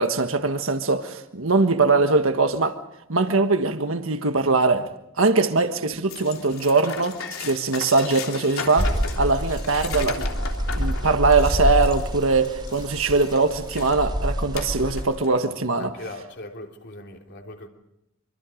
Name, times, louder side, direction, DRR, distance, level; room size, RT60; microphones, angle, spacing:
voice 1, 0.0-2.8 3.1-4.9 5.2-10.3 10.7-15.9, right 3 dB, 70° right, 1.5 m, -21 dB
sound 1, 6.1-14.0 14.5-15.5, left 5 dB, 85° left, 3.4 m, -36 dB
sound 2, 8.8-15.0, equal, 20° right, 3.1 m, -27 dB
voice 2, 15.8-17.7, left 2 dB, 55° left, 3.3 m, -39 dB
25.5 x 25.5 x 5.2 m
head